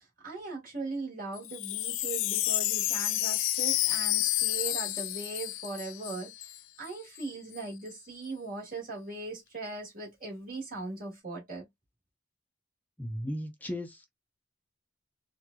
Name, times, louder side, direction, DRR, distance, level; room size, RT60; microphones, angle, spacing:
voice 1, 0.0-11.6, right 3 dB, 45° right, 1.6 m, -39 dB
Wind chime, 1.4-6.6 6.8-6.9 7.2-7.6, left 16 dB, 80° left, 0.4 m, -30 dB
voice 2, 13.0-14.1, equal, 10° left, 0.6 m, -36 dB
4.5 x 2.5 x 2.3 m
head